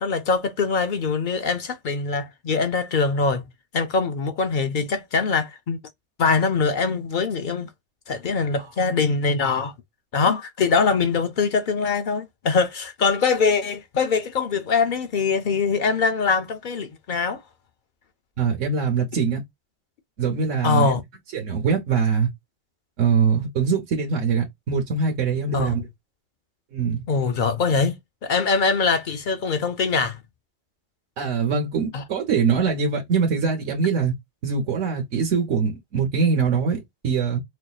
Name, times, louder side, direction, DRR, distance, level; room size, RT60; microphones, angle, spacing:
voice 1, 0.0-3.5 3.7-5.8 6.2-7.7 8.1-9.7 10.1-17.4 20.6-21.0 25.5-25.7 27.1-28.0 28.2-30.2 31.9-32.0, left 4 dB, 55° left, 0.6 m, -23 dB
voice 2, 18.4-19.4 20.2-20.9 21.3-22.3 23.0-25.9 26.7-27.0 31.2-34.1 34.4-37.4, right 5 dB, 85° right, 1.2 m, -23 dB
4.3 x 2.5 x 2.3 m
omnidirectional pair, 1.2 m